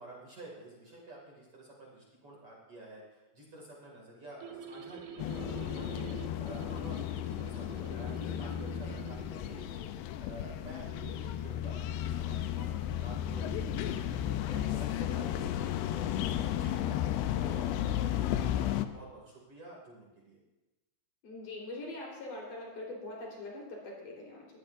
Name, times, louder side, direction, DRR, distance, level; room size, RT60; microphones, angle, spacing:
voice 1, 0.0-6.1 6.4-9.8 10.2-16.9 17.3-20.4, right 2 dB, 40° right, -3 dB, 3.0 m, -50 dB
sound 1, 4.4-9.6, right 6 dB, 75° right, 2.8 m, -47 dB
sound 2, 5.2-18.9, left 11 dB, 90° left, 2.8 m, -34 dB
voice 2, 21.2-24.5, left 2 dB, 55° left, -3 dB, 5.4 m, -43 dB
22.0 x 15.5 x 2.6 m, 1.1 s
omnidirectional pair, 4.6 m